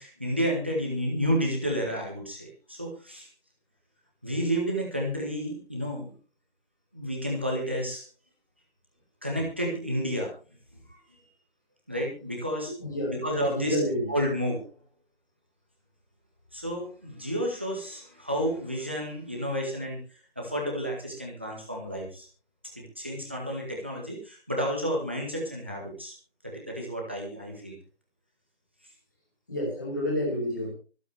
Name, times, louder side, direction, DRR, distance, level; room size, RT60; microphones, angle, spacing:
voice 1, 0.0-3.3 4.2-6.1 6.9-8.0 9.2-10.3 11.9-12.7 13.1-13.8 14.1-14.7 16.5-20.0 20.4-22.3 22.8-26.1 26.4-27.8, equal, 10° right, -1 dB, 1.8 m, -31 dB
voice 2, 12.8-14.1 29.5-30.7, left 1 dB, 15° left, -3 dB, 5.3 m, -30 dB
25.0 x 8.4 x 3.4 m, 0.35 s
figure-of-eight pair, 180°, 32 cm